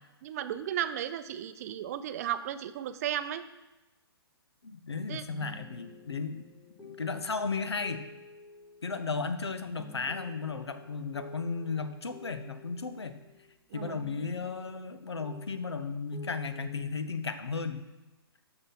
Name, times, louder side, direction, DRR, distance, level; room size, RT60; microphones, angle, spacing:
voice 1, 0.2-3.4 5.1-5.2 13.7-14.0, right 11 dB, 35° right, 11 dB, 0.5 m, -34 dB
voice 2, 4.6-6.4 6.8-8.0 8.8-13.2 13.7-17.9, left 4 dB, 80° left, 10 dB, 0.9 m, -35 dB
sound 1, 5.3-13.6 13.8-16.9, left 2 dB, ahead, 0.9 m, -52 dB
7.9 x 6.0 x 5.7 m, 1.1 s
figure-of-eight pair, 130°, 13 cm